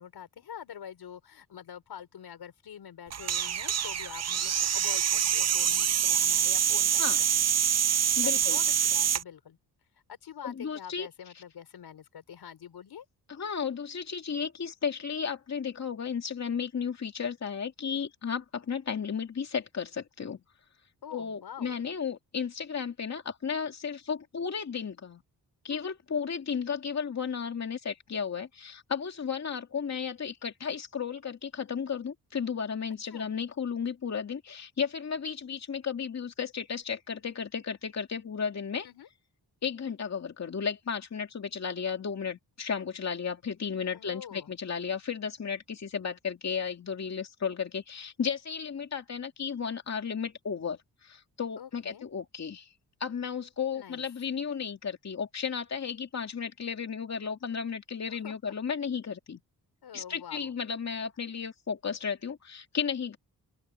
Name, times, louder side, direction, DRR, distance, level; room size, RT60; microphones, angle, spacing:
voice 1, 0.0-7.4 8.2-9.6 10.1-13.1 21.0-21.8 25.7-25.9 33.1-33.3 38.8-39.1 43.9-44.5 51.6-52.0 53.7-54.0 58.1-58.5 59.8-60.5, left 8 dB, 90° left, 6.0 m, -46 dB
sound 1, 3.1-9.2, right 9 dB, 45° right, 0.6 m, -26 dB
voice 2, 8.2-8.6 10.4-11.1 13.3-20.4 21.1-25.2 25.6-38.9 39.6-52.7 53.0-59.4 59.9-63.2, left 6 dB, 45° left, 2.5 m, -34 dB
open air
wide cardioid pair, 130°, 37 cm